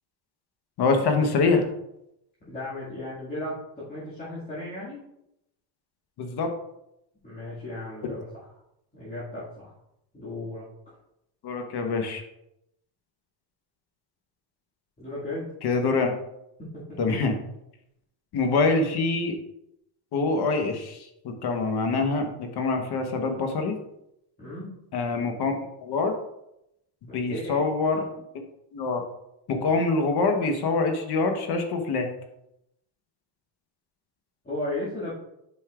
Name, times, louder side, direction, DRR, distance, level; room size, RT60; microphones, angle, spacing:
voice 1, 0.8-1.7 6.2-6.5 11.4-12.2 15.6-16.1 17.0-17.3 18.3-19.4 20.1-23.8 24.9-26.1 27.1-28.0 28.7-29.0 29.5-32.1, left 3 dB, 50° left, 5 dB, 1.1 m, -25 dB
voice 2, 2.5-5.0 7.2-8.3 8.9-9.7 10.1-10.6 15.0-15.5 16.6-17.0 24.4-24.8 27.1-28.2 34.4-35.1, left 1 dB, 20° left, -10 dB, 2.0 m, -35 dB
7.8 x 5.4 x 2.4 m, 0.82 s
cardioid pair, 135°, 48 cm